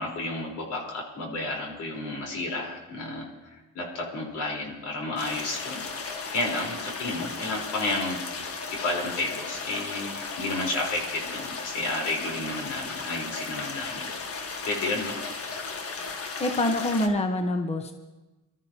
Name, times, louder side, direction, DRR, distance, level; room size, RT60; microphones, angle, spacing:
voice 1, 0.0-8.2 8.7-15.2, left 2 dB, 75° left, -1 dB, 4.2 m, -32 dB
sound 1, 5.2-17.1, left 4 dB, 50° left, 1.4 m, -35 dB
voice 2, 16.4-17.9, left 1 dB, 20° left, 5 dB, 1.1 m, -25 dB
24.0 x 13.0 x 2.9 m, 1.1 s
cardioid pair, 90°, 30 cm